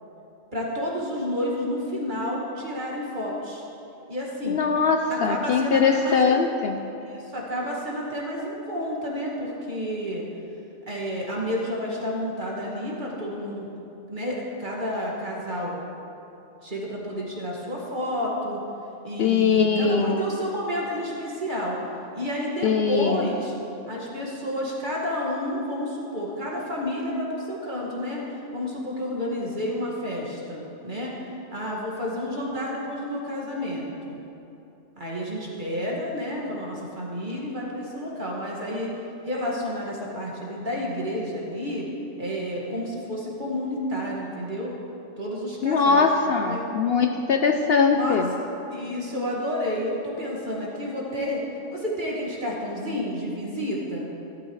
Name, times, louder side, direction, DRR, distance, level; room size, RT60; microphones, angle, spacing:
voice 1, 0.5-3.6 4.1-4.6 5.1-6.4 7.0-10.2 10.9-13.7 14.1-15.8 16.6-18.6 19.0-21.8 22.1-23.5 23.9-28.3 28.5-31.1 31.5-34.2 35.0-38.9 39.2-41.9 42.2-44.7 45.2-46.1 46.4-46.7 47.9-48.2 48.7-51.4 51.7-54.1, equal, 40° right, -4 dB, 2.1 m, -30 dB
voice 2, 4.5-6.8 19.2-20.2 22.6-23.3 45.6-48.3, left 5 dB, 60° left, 4 dB, 0.8 m, -21 dB
16.0 x 12.5 x 3.2 m, 2.9 s
omnidirectional pair, 1.3 m